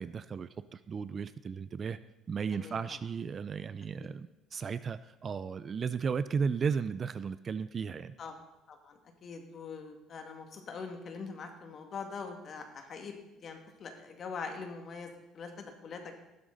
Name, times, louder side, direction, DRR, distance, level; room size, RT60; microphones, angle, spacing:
voice 1, 0.0-2.0 2.3-8.1, right 6 dB, 30° right, 14 dB, 0.4 m, -35 dB
voice 2, 8.7-16.1, left 5 dB, 40° left, 4 dB, 2.1 m, -43 dB
15.5 x 12.0 x 4.0 m, 0.98 s
cardioid pair, 145°, 0 cm